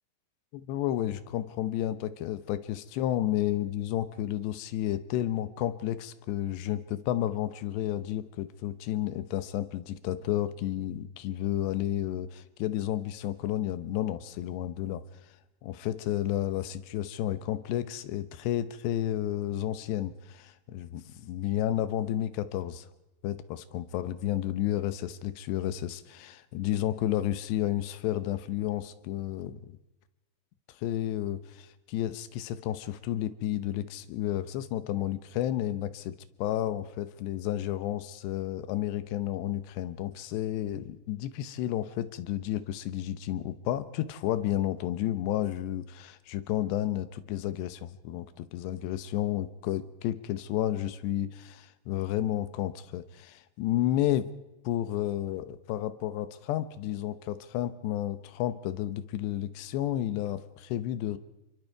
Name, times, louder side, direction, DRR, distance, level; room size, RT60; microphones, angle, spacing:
voice 1, 0.5-15.0 15.6-22.9 23.2-29.7 30.8-54.3 54.6-61.2, left 12 dB, 90° left, 13 dB, 3.1 m, -31 dB
28.0 x 24.0 x 4.7 m, 1.0 s
omnidirectional pair, 4.8 m